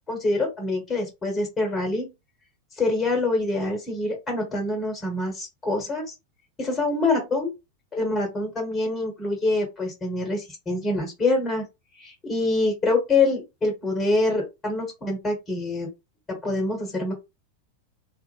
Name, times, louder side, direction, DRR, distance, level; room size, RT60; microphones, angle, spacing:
voice 1, 0.1-2.1 2.8-6.1 6.6-7.5 7.9-11.7 12.0-15.9 16.3-17.1, left 2 dB, 20° left, 3 dB, 1.2 m, -25 dB
2.5 x 2.1 x 3.1 m, 0.24 s
figure-of-eight pair, 90°, 0 cm